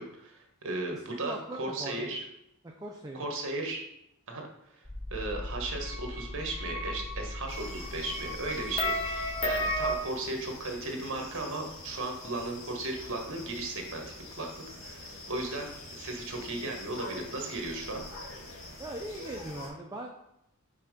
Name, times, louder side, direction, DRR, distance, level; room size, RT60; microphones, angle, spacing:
voice 1, 0.0-2.2 3.1-3.8 4.3-4.4 4.7-4.8 5.1-14.0 14.4-14.5 14.8-18.1, right 2 dB, 60° right, 2 dB, 1.3 m, -36 dB
voice 2, 0.9-2.1 2.6-3.2 18.8-20.2, right 1 dB, 15° right, 1 dB, 0.5 m, -40 dB
sound 1, 4.8-10.0, left 1 dB, 25° left, 0.8 m, -34 dB
sound 2, 7.5-19.7, left 2 dB, 65° left, 1.9 m, -45 dB
5.5 x 3.6 x 5.2 m, 0.81 s
head